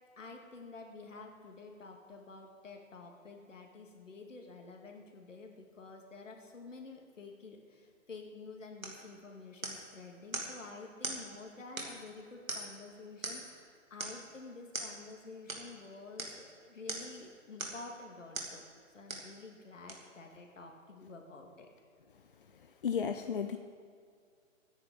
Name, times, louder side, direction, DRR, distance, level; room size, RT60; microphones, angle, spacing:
voice 1, 0.2-18.6 18.9-21.7, left 3 dB, 65° left, 3 dB, 2.2 m, -50 dB
sound 1, 8.8-9.0 9.6-9.9 10.3-10.5 11.0-11.2 11.8-12.1 12.5-12.8 13.2-13.5 14.0-14.2 14.7-14.9 15.5-15.7 16.2-16.4 16.9-17.2 17.6-17.9 18.3-18.6 19.1-19.3 19.9-20.0, right 2 dB, 80° right, 2.6 m, -40 dB
voice 2, 22.8-23.6, left 7 dB, 45° left, 8 dB, 0.5 m, -33 dB
23.0 x 9.8 x 3.9 m, 2.1 s
figure-of-eight pair, 135°, 40 cm